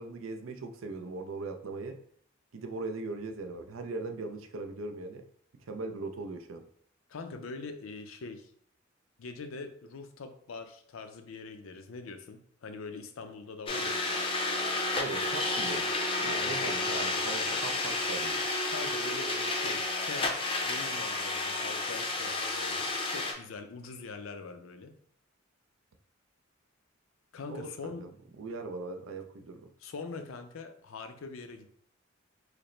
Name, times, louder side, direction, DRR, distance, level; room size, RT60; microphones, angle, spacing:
voice 1, 0.0-2.0 2.5-5.2 5.7-6.7 15.0-15.9 16.2-18.5 27.5-28.1 28.4-29.7, right 3 dB, 75° right, 6 dB, 0.5 m, -39 dB
voice 2, 7.1-8.5 9.2-14.2 16.2-17.6 18.7-25.0 27.3-28.1 29.8-31.7, left 4 dB, 75° left, 7 dB, 0.5 m, -43 dB
sound 1, 13.7-23.3, left 2 dB, 25° left, 0.5 m, -31 dB
4.9 x 2.0 x 3.1 m, 0.62 s
head